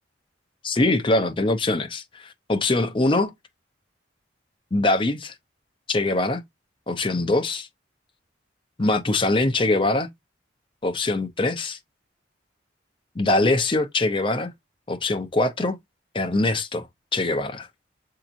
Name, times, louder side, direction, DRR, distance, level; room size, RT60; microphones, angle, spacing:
voice 1, 0.6-3.3 4.7-5.3 5.9-6.4 6.9-7.7 8.8-10.1 10.8-11.8 13.2-14.5 14.9-15.8 16.1-16.9 17.1-17.7, left 2 dB, 25° left, 0.6 m, -23 dB
6.9 x 2.8 x 2.5 m
head